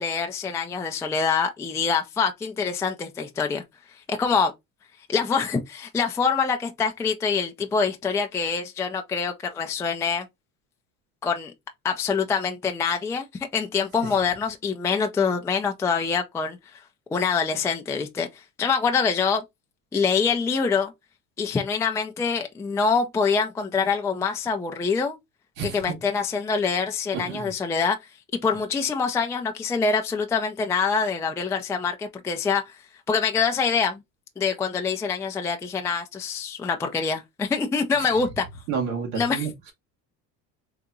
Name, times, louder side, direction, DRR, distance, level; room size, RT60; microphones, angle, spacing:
voice 1, 0.0-3.6 4.1-4.5 5.1-10.3 11.2-11.5 11.8-13.3 13.5-16.8 17.1-18.3 18.6-19.4 19.9-20.9 21.4-25.2 25.7-28.0 28.3-32.6 33.1-34.0 34.4-38.5 39.2-39.5, left 5 dB, 10° left, 0.3 m, -25 dB
voice 2, 25.6-26.0 27.1-27.5 38.7-39.7, right 6 dB, 80° right, 2.2 m, -30 dB
3.9 x 2.8 x 3.6 m
cardioid pair, 140°, 38 cm